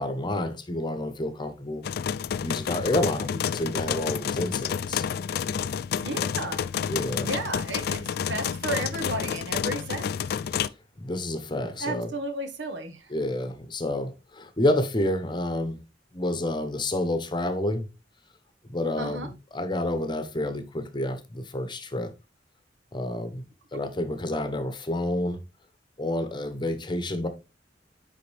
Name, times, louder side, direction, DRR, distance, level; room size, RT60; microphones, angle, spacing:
voice 1, 0.0-1.8 2.4-5.1 6.9-7.3 11.0-12.1 13.1-15.8 16.1-17.9 18.7-22.1 22.9-23.4 23.7-25.4 26.0-27.3, left 1 dB, 25° left, 0.8 m, -29 dB
sound 1, 1.8-10.7, left 8 dB, 60° left, 0.3 m, -29 dB
voice 2, 6.0-6.7 7.2-10.1 11.8-13.1 19.0-19.3, right 2 dB, 85° right, 1.2 m, -33 dB
9.5 x 3.9 x 3.3 m
head